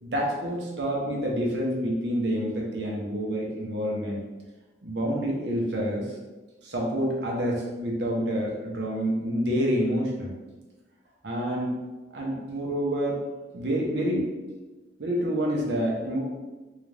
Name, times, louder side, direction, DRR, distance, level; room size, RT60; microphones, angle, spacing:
voice 1, 0.0-4.2 4.8-6.1 6.6-10.4 11.2-11.7 12.1-13.2 13.5-14.3 15.0-16.2, equal, 75° right, -2 dB, 0.9 m, -28 dB
3.8 x 2.4 x 3.3 m, 1.2 s
head